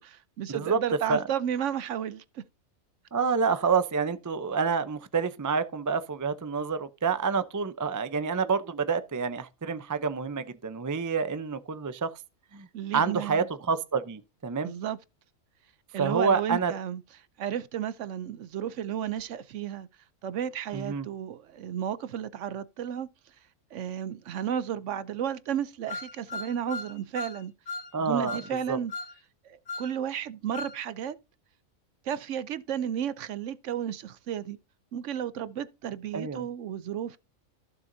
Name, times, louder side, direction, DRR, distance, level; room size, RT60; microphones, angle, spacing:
voice 1, 0.0-2.4 12.7-13.5 14.6-15.0 15.9-17.0 17.4-19.9 20.2-23.1 23.7-27.5 28.0-28.9 29.4-31.2 32.0-34.6 34.9-37.2, right 9 dB, 65° right, 0.9 m, -33 dB
voice 2, 3.1-12.1 12.5-12.7 12.9-14.7 16.0-16.7 20.7-21.1 27.9-28.4 28.7-28.8 36.1-36.4, right 5 dB, 25° right, 0.4 m, -28 dB
sound 1, 25.9-27.4 27.7-27.9 28.3-28.5 28.9-29.1 29.7-29.9 30.5-30.8, left 4 dB, 75° left, 2.4 m, -37 dB
14.5 x 6.9 x 2.7 m
omnidirectional pair, 1.4 m